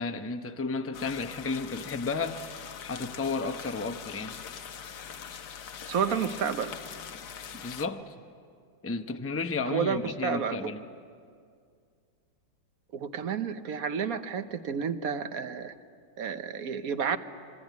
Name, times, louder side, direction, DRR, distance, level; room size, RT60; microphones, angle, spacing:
voice 1, 0.0-4.4 7.5-8.1 8.8-10.9, left 4 dB, 15° left, 7 dB, 0.4 m, -33 dB
sound 1, 0.9-7.9, left 7 dB, 65° left, 1.4 m, -43 dB
voice 2, 5.9-6.7 9.7-10.7 12.9-15.7 16.2-17.2, right 6 dB, 55° right, 10 dB, 1.2 m, -30 dB
25.5 x 22.5 x 9.4 m, 2.2 s
omnidirectional pair, 2.0 m